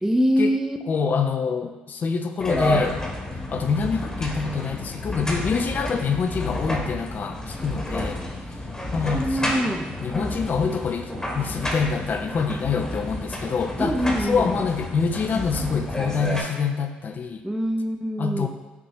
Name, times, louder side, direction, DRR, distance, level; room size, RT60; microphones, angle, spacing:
voice 1, 0.0-0.8 9.1-9.9 13.8-14.6 17.4-18.5, equal, 10° right, 5 dB, 0.5 m, -24 dB
voice 2, 0.9-3.0 3.5-8.2 8.9-9.7 10.0-17.4 18.2-18.5, left 5 dB, 45° left, 6 dB, 0.5 m, -26 dB
sound 1, 2.4-16.4, left 1 dB, 15° left, 1.1 m, -30 dB
5.8 x 2.6 x 3.1 m, 1.3 s
hypercardioid pair, 55°, 4 cm